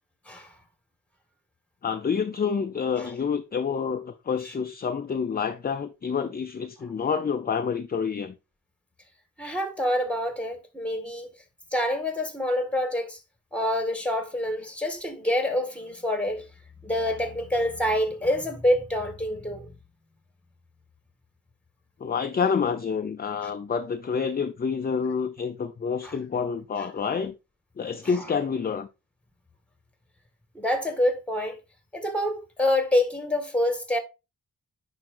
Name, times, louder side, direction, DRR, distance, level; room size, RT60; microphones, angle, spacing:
voice 1, 1.8-8.3 22.0-27.3 27.8-28.9, left 6 dB, 30° left, 0.5 m, -28 dB
voice 2, 9.4-11.3 11.7-13.2 13.5-16.5 16.8-19.7 23.4-23.5 26.0-26.2 28.0-28.1 30.5-31.6 31.9-34.0, left 1 dB, 5° left, 1.8 m, -27 dB
10.5 x 4.9 x 2.5 m
wide cardioid pair, 105°, 33 cm